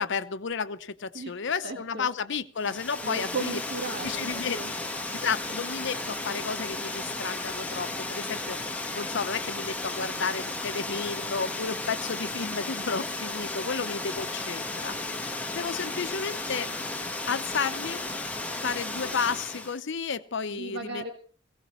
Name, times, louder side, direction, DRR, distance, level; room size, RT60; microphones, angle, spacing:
voice 1, 0.0-3.6 4.0-4.6 5.1-8.6 8.9-14.9 15.5-16.7 17.3-18.0 18.6-21.0, left 5 dB, 65° left, 12 dB, 0.8 m, -32 dB
voice 2, 1.6-2.1 2.6-2.7 3.0-4.7 20.5-21.1, right 3 dB, 60° right, 3 dB, 1.7 m, -36 dB
Water, 2.6-19.8, left 2 dB, 10° left, 1.4 m, -34 dB
18.5 x 17.0 x 3.1 m, 0.41 s
head